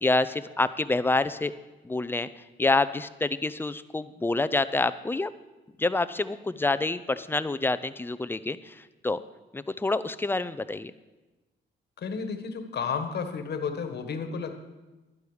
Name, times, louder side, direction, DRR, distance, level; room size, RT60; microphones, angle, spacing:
voice 1, 0.0-1.5 1.8-5.3 5.8-9.2 9.5-10.9, left 2 dB, 10° left, 14 dB, 0.5 m, -27 dB
voice 2, 12.0-14.5, left 5 dB, 55° left, 7 dB, 1.4 m, -32 dB
12.0 x 11.0 x 4.9 m, 1.1 s
cardioid pair, 90°, 20 cm